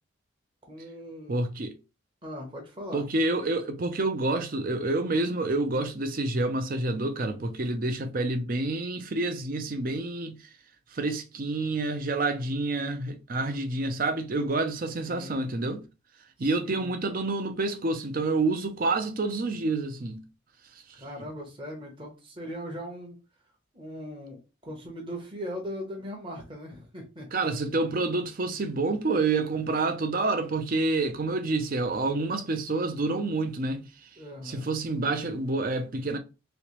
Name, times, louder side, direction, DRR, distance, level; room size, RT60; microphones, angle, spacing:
voice 1, 0.6-1.4 2.2-3.0 15.0-15.5 16.4-16.9 21.0-23.2 23.7-27.5 34.2-34.7, equal, 25° right, 0.9 m, -39 dB
voice 2, 1.3-1.8 2.9-10.4 10.9-15.8 16.4-20.2 27.3-34.1 34.4-36.2, right 2 dB, 45° right, 0.5 m, -28 dB
3.1 x 2.9 x 3.0 m
head